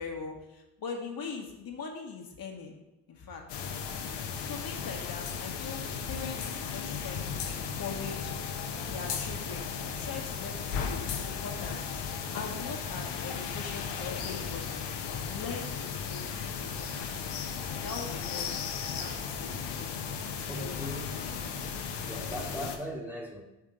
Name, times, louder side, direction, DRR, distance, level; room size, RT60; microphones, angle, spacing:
voice 1, 0.0-2.8 3.1-3.4 4.5-8.3 8.9-11.8 12.3-14.8 15.3-21.4, left 5 dB, 55° left, 1 dB, 1.3 m, -41 dB
sound 1, 3.5-22.8, left 6 dB, 85° left, 0.9 m, -36 dB
voice 2, 20.5-21.1 22.1-23.4, equal, 5° right, -1 dB, 1.3 m, -38 dB
5.9 x 3.6 x 5.0 m, 1.0 s
supercardioid pair, 65°, 41 cm